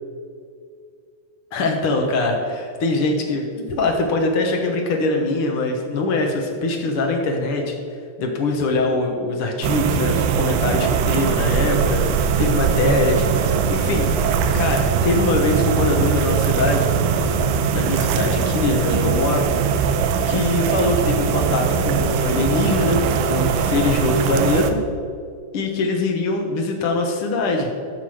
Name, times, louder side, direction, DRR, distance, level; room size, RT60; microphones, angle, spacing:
voice 1, 1.5-7.7 8.2-14.1 14.5-16.9 17.7-19.8 20.3-24.8 25.5-27.7, left 2 dB, 75° left, 1 dB, 1.3 m, -22 dB
sound 1, 9.6-24.7, right 6 dB, 85° right, 2.3 m, -21 dB
14.5 x 6.0 x 4.9 m, 2.3 s
omnidirectional pair, 4.2 m